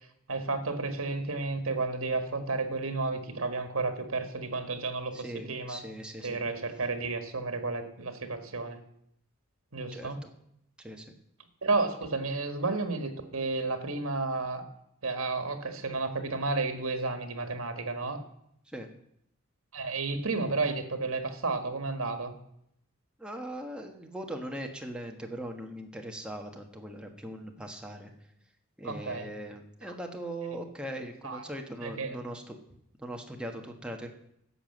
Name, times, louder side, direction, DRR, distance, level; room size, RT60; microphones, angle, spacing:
voice 1, 0.3-5.8 6.2-8.8 9.7-10.2 11.6-14.6 15.0-18.2 19.7-22.3 28.8-29.3 31.2-31.4 31.8-32.2, right 3 dB, 80° right, 8 dB, 1.6 m, -32 dB
voice 2, 5.1-6.4 9.9-10.3 10.8-11.0 18.7-18.9 23.2-28.1 28.8-32.6 33.0-34.1, right 1 dB, 5° right, 2 dB, 1.3 m, -40 dB
11.5 x 7.0 x 7.8 m, 0.75 s
head